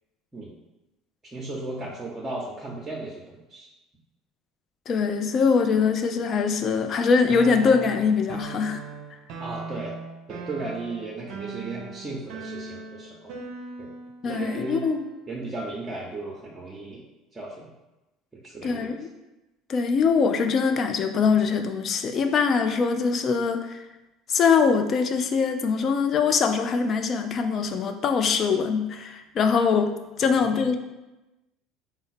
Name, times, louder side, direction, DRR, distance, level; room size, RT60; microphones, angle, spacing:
voice 1, 1.3-3.7 9.4-9.9 10.3-13.3 13.8-13.9 14.2-14.9 15.3-17.0 17.3-17.7 18.4-18.9 30.2-30.7, right 2 dB, 20° right, -4 dB, 0.8 m, -35 dB
voice 2, 4.9-8.8 14.2-15.0 18.6-19.1 19.7-23.8 24.3-29.9 30.2-30.7, left 5 dB, 45° left, 7 dB, 0.4 m, -23 dB
sound 1, 7.3-15.2, right 4 dB, 60° right, 0.5 m, -39 dB
3.8 x 2.0 x 4.1 m, 1.0 s
hypercardioid pair, 70°, 0 cm